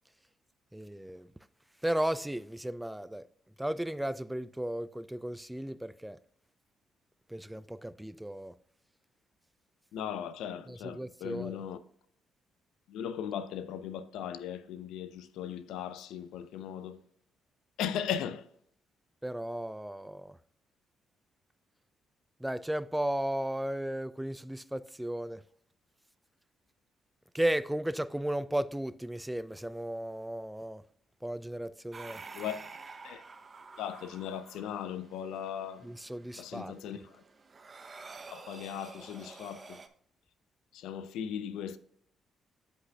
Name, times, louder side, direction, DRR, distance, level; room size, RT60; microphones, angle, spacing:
voice 1, 0.7-1.3 1.8-3.3 3.6-6.2 7.3-8.6 10.7-11.7 19.2-20.4 22.4-25.4 27.3-30.8 31.2-32.2 35.8-37.0, right 1 dB, 5° right, 0.3 m, -35 dB
voice 2, 9.9-11.8 12.9-17.0 17.8-18.5 32.3-32.6 33.0-33.2 33.8-35.9 36.4-37.0 38.3-39.8 40.7-41.8, left 9 dB, 90° left, 0.5 m, -38 dB
sound 1, 31.9-39.9, right 4 dB, 35° right, 0.7 m, -50 dB
8.3 x 7.8 x 2.2 m
cardioid pair, 90°, 0 cm